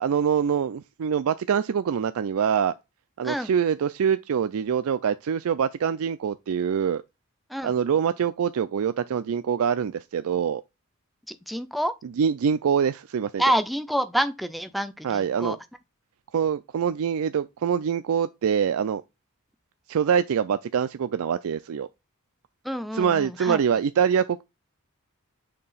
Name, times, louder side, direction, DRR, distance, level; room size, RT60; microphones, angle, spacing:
voice 1, 0.0-2.7 3.2-7.0 7.6-10.6 12.2-13.4 15.0-15.6 16.3-19.0 19.9-21.9 22.9-24.4, right 7 dB, 70° right, 0.4 m, -24 dB
voice 2, 11.3-11.9 13.4-15.6 22.6-23.6, equal, ahead, 0.5 m, -27 dB
6.6 x 2.8 x 5.5 m
head